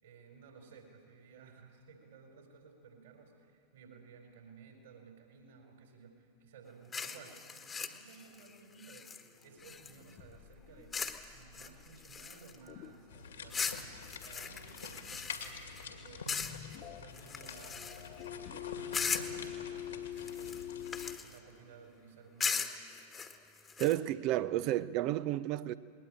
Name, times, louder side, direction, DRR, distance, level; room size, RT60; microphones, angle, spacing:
voice 1, 0.0-20.7 21.2-22.9, right 5 dB, 60° right, 3 dB, 4.3 m, -56 dB
sound 1, 6.9-10.1 10.9-11.2 11.5-12.7 13.5-15.9 16.3-16.8 17.1-18.2 18.9-19.5 20.2-21.4 22.4-24.0, left 6 dB, 20° left, 1.3 m, -39 dB
sound 2, 9.6-15.0 15.3-15.8 16.2-21.2, left 11 dB, 40° left, 0.8 m, -47 dB
sound 3, 13.1-21.1, left 5 dB, 70° left, 2.1 m, -47 dB
voice 2, 23.8-25.7, right 14 dB, 40° right, 15 dB, 0.6 m, -31 dB
20.5 x 18.5 x 8.8 m, 2.5 s
figure-of-eight pair, 90°, 0 cm